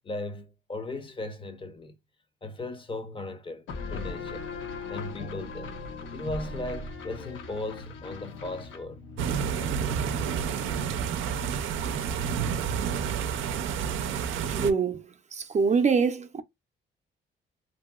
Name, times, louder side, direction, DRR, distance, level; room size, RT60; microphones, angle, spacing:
voice 1, 0.0-2.0 2.4-4.5 4.9-5.7 6.1-9.0 13.3-13.7, left 2 dB, 25° left, 0.6 m, -37 dB
sound 1, 3.7-11.0, left 3 dB, 80° left, 0.8 m, -39 dB
sound 2, 9.2-14.7, right 7 dB, 85° right, 0.5 m, -29 dB
voice 2, 14.5-15.0 15.3-16.4, right 5 dB, 35° right, 0.5 m, -24 dB
2.8 x 2.7 x 2.2 m
cardioid pair, 90°, 20 cm